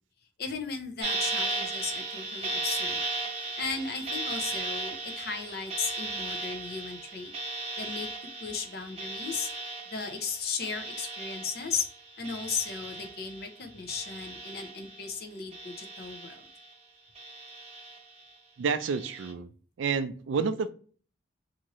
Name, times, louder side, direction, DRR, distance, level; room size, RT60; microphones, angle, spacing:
voice 1, 0.4-3.0 3.4-7.3 7.8-8.1 8.4-9.5 9.9-11.8 12.2-16.4, left 5 dB, 55° left, 5 dB, 0.6 m, -36 dB
sound 1, 1.0-13.6 13.9-15.1 15.5-16.7 17.1-18.2 18.8-19.3, right 2 dB, 35° right, 0.6 m, -36 dB
voice 2, 18.6-19.5 19.8-20.7, right 5 dB, 85° right, 11 dB, 0.4 m, -29 dB
2.7 x 2.5 x 2.9 m, 0.42 s
head